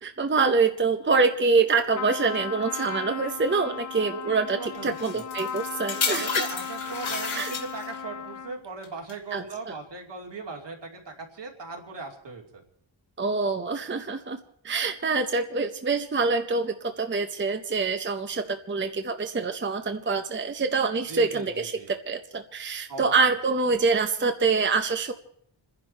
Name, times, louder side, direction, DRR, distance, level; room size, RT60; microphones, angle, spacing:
voice 1, 0.0-6.5 7.3-7.5 9.3-9.7 13.2-14.4 14.6-25.1, right 4 dB, 25° right, 7 dB, 0.7 m, -25 dB
Trumpet, 1.9-8.6, left 7 dB, 40° left, 0.7 m, -36 dB
voice 2, 4.1-5.3 6.1-12.6 21.1-21.9 22.9-23.1, right 4 dB, 65° right, 1 dB, 2.8 m, -39 dB
sound 1, 5.0-8.0 8.8-9.1, left 5 dB, 80° left, 2.7 m, -31 dB
28.0 x 10.5 x 4.4 m, 0.70 s
wide cardioid pair, 150°, 46 cm